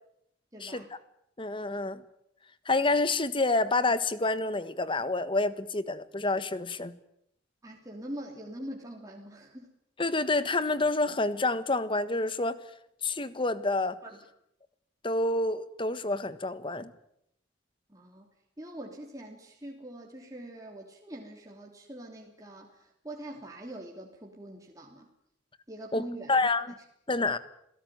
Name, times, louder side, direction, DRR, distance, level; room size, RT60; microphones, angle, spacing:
voice 1, 0.5-0.9 7.6-9.7 14.0-14.2 17.9-18.3 18.6-25.1 25.7-26.5, right 1 dB, 20° right, 0 dB, 3.2 m, -43 dB
voice 2, 1.4-2.0 2.6-6.9 10.0-12.6 13.0-14.0 15.0-16.9 25.9-26.0 26.3-26.7 27.1-27.4, left 2 dB, 25° left, 14 dB, 1.4 m, -28 dB
27.0 x 17.5 x 9.4 m, 0.74 s
head